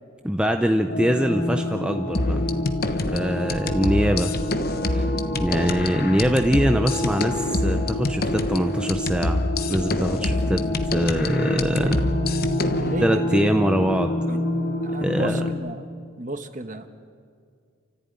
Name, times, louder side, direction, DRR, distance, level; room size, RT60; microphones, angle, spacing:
voice 1, 0.2-2.4 3.1-4.4 4.8-5.1 5.4-12.0 13.0-14.1 15.0-15.4, equal, 5° right, 5 dB, 0.6 m, -23 dB
sound 1, 0.9-15.5, left 1 dB, 60° left, 3.1 m, -28 dB
sound 2, 2.1-12.9, left 2 dB, 45° left, 1.1 m, -27 dB
voice 2, 12.8-13.5 14.3-14.5 14.8-15.8 16.2-16.9, right 1 dB, 35° right, 8 dB, 1.3 m, -33 dB
29.0 x 14.5 x 9.5 m, 2.2 s
head